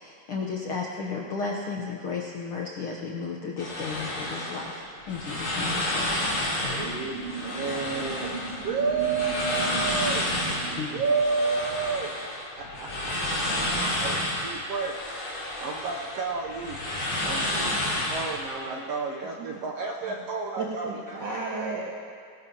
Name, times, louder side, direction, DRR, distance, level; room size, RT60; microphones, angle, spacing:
voice 1, 0.0-6.1 6.6-7.0 10.8-10.9, left 4 dB, 85° left, -2 dB, 1.2 m, -34 dB
sound 1, 3.6-18.4, left 1 dB, 50° left, 4.5 m, -30 dB
voice 2, 6.6-8.4 8.6-10.3 10.9-12.1 12.6-13.6 14.0-15.0 15.6-16.8 17.2-21.2, right 4 dB, 85° right, 0 dB, 1.4 m, -31 dB
sound 2, 6.8-11.7, right 3 dB, 65° right, 4.7 m, -38 dB
voice 3, 10.4-11.0 18.6-18.8 20.1-20.2 20.6-21.9, right 3 dB, 45° right, -5 dB, 1.6 m, -34 dB
20.5 x 18.0 x 2.9 m, 2.1 s
omnidirectional pair, 3.9 m